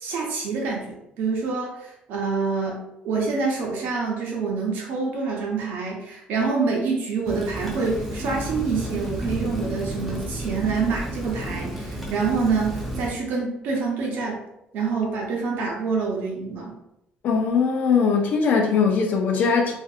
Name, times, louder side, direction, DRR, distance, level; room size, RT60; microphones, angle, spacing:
voice 1, 0.0-14.4 14.7-16.7, right 4 dB, 75° right, 0.8 m, -26 dB
Rain, 7.2-13.1, right 1 dB, ahead, 0.6 m, -31 dB
voice 2, 17.2-19.7, left 5 dB, 55° left, 0.5 m, -20 dB
2.7 x 2.5 x 2.4 m
cardioid pair, 135°, 3 cm